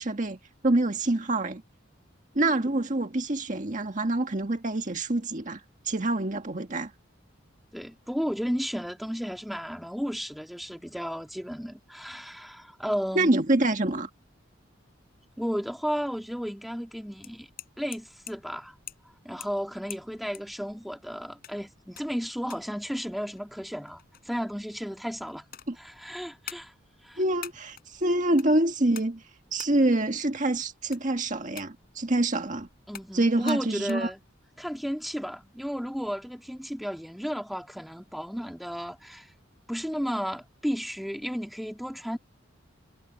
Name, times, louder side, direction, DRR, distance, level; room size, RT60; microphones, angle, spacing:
voice 1, 0.0-1.6 2.3-6.9 13.1-14.1 25.7-25.8 27.2-29.2 29.5-32.7 33.1-34.1, right 2 dB, 40° right, 1.7 m, -26 dB
voice 2, 7.7-13.3 15.4-17.5 17.8-18.7 19.2-25.5 25.8-26.7 27.0-27.2 32.9-34.2 34.6-39.3 39.7-42.2, equal, ahead, 2.6 m, -33 dB
sound 1, 17.1-33.9, left 10 dB, 50° left, 7.9 m, -49 dB
head